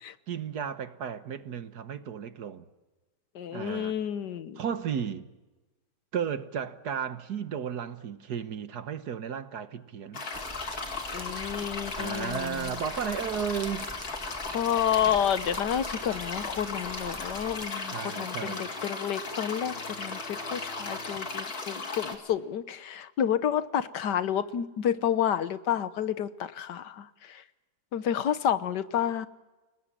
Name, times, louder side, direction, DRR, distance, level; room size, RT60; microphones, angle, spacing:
voice 1, 0.3-2.7 3.5-3.9 4.6-5.3 6.1-10.2 12.0-13.9 17.9-18.7, right 7 dB, 70° right, 1.7 m, -34 dB
voice 2, 3.3-4.6 11.1-12.7 14.5-27.4 27.9-29.3, left 9 dB, 85° left, 1.7 m, -30 dB
sound 1, 10.1-22.2, left 3 dB, 60° left, 2.9 m, -36 dB
sound 2, 10.3-17.7, right 2 dB, 15° right, 0.5 m, -45 dB
sound 3, 16.5-21.9, left 2 dB, 45° left, 7.6 m, -50 dB
30.0 x 19.0 x 7.5 m
omnidirectional pair, 1.8 m